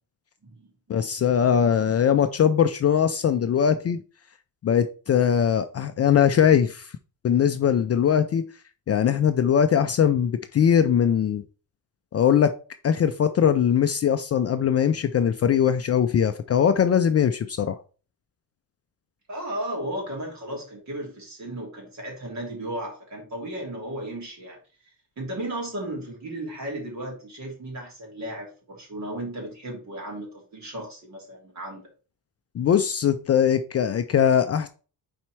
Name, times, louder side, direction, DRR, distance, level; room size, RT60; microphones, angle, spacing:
voice 1, 0.9-4.0 4.6-6.9 7.2-8.4 8.9-11.4 12.1-12.5 12.8-17.8 32.5-34.7, left 8 dB, 40° left, 0.4 m, -21 dB
voice 2, 19.3-24.6 25.2-31.9, right 1 dB, 45° right, 3.0 m, -35 dB
5.6 x 4.3 x 4.5 m
cardioid pair, 155°, 40 cm